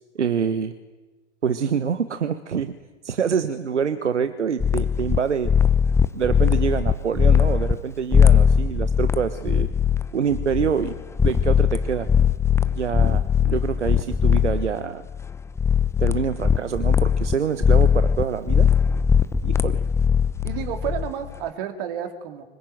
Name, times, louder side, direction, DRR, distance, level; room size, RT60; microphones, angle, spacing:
voice 1, 0.1-0.7 1.4-2.7 3.0-5.5 6.1-9.7 10.1-10.9 11.2-12.1 12.7-15.1 16.0-18.7 19.4-19.8, right 7 dB, 70° right, 11 dB, 1.4 m, -26 dB
sound 1, 4.6-5.2 5.4-7.7 8.1-14.8 15.1-17.4 17.6-21.4, left 7 dB, 5° left, 0.9 m, -20 dB
voice 2, 20.4-22.4, right 9 dB, 45° right, 7 dB, 3.4 m, -31 dB
25.5 x 22.0 x 9.4 m, 1.2 s
figure-of-eight pair, 95°, 36 cm